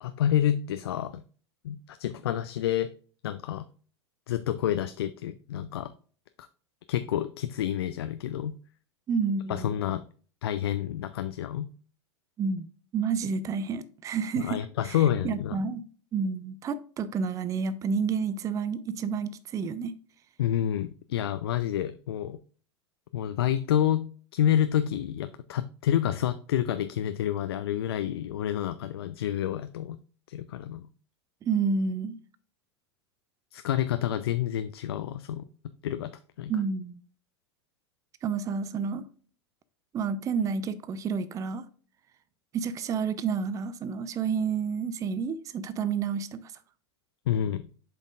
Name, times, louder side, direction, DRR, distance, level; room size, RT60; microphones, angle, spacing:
voice 1, 0.0-1.2 1.6-2.9 3.2-3.7 4.3-5.9 6.4-6.5 6.9-8.6 9.5-10.0 10.4-11.7 14.4-15.6 20.4-22.4 23.1-30.0 30.3-30.9 33.5-35.4 35.8-36.1 36.4-36.5 47.3-47.6, left 11 dB, 60° left, 0.4 m, -28 dB
voice 2, 9.1-9.7 12.4-12.7 12.9-15.0 15.2-15.8 16.1-19.9 31.4-32.2 36.5-37.0 38.2-39.1 39.9-41.7 42.5-46.5, right 5 dB, 25° right, 0.5 m, -30 dB
7.6 x 5.3 x 2.4 m
figure-of-eight pair, 90°, 14 cm